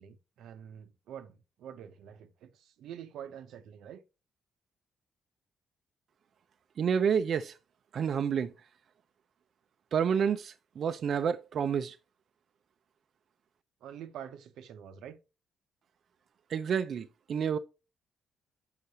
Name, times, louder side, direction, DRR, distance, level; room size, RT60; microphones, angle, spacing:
voice 1, 0.0-4.0 13.8-15.2, right 9 dB, 90° right, 0.7 m, -46 dB
voice 2, 6.8-7.6 7.9-8.5 9.9-12.0 16.5-17.6, right 7 dB, 55° right, 0.4 m, -29 dB
6.5 x 5.7 x 2.8 m
cardioid pair, 130°, 0 cm